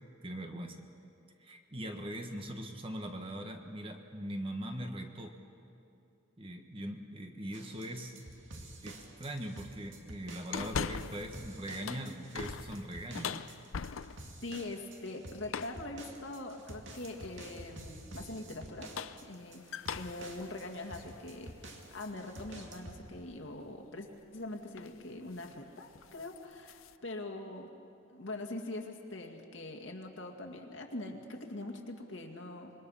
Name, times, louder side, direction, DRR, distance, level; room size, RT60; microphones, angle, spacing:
voice 1, 0.2-0.8 1.4-5.4 6.4-8.2 8.8-13.4, right 1 dB, 25° right, 4 dB, 1.4 m, -41 dB
sound 1, 7.5-23.1, right 1 dB, 70° right, 2.2 m, -50 dB
sound 2, 10.5-11.4 11.7-14.4 15.5-15.9 16.9-17.4 18.7-22.1 22.6-22.7 24.2-24.4 24.7-25.0 25.3-25.6 25.9-27.0, left 6 dB, 85° left, 0.6 m, -41 dB
voice 2, 14.4-18.9 19.2-27.7 28.1-32.7, left 2 dB, 70° left, 2 dB, 2.1 m, -43 dB
26.0 x 22.0 x 5.7 m, 2.7 s
head